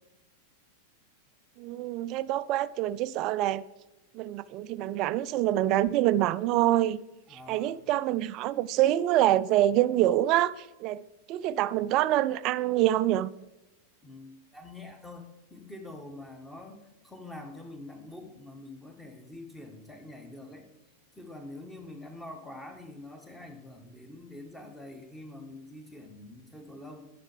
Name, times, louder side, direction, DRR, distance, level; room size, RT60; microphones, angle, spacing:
voice 1, 1.6-3.6 4.1-7.0 7.3-11.0 11.3-13.3, right 14 dB, 40° right, 0.3 m, -26 dB
voice 2, 7.3-7.8 14.0-15.2 15.5-20.7 21.2-27.0, left 2 dB, 5° left, 1.5 m, -45 dB
10.5 x 6.7 x 5.0 m
figure-of-eight pair, 90°, 0 cm